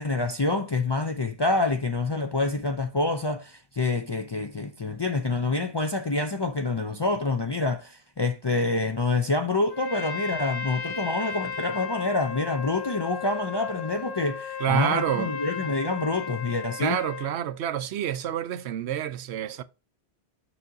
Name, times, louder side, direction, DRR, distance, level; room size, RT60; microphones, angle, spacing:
voice 1, 0.0-17.0, left 3 dB, 40° left, 0.4 m, -27 dB
Trumpet, 9.7-17.4, left 5 dB, 70° left, 1.4 m, -35 dB
voice 2, 14.6-15.4 16.8-19.6, right 10 dB, 85° right, 0.9 m, -28 dB
7.0 x 5.8 x 2.6 m
omnidirectional pair, 1.1 m